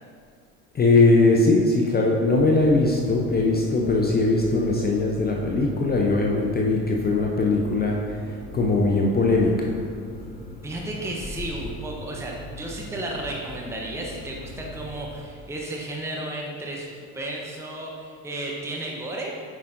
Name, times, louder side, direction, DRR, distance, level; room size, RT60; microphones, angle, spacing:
voice 1, 0.7-9.7 10.9-11.1 11.6-11.8, left 3 dB, 25° left, 0 dB, 0.7 m, -21 dB
sound 1, 2.2-15.2, left 1 dB, 40° left, 1.4 m, -41 dB
voice 2, 10.6-19.3, right 1 dB, 5° right, -2 dB, 0.9 m, -33 dB
7.4 x 5.6 x 2.6 m, 2.1 s
hypercardioid pair, 70°, 40 cm